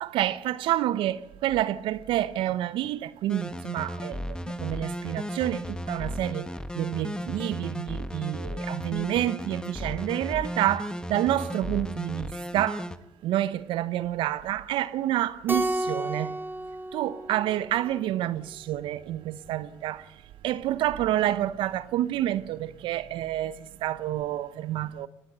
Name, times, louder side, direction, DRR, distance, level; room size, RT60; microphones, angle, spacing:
voice 1, 0.0-6.5 6.7-12.9 13.2-16.4 16.9-20.0 20.4-25.1, right 13 dB, 70° right, 0.8 m, -28 dB
sound 1, 3.3-13.0, equal, 10° left, 1.5 m, -35 dB
Keyboard (musical), 15.5-18.1, right 1 dB, 25° right, 1.9 m, -32 dB
19.5 x 16.5 x 8.1 m
hypercardioid pair, 45°, 9 cm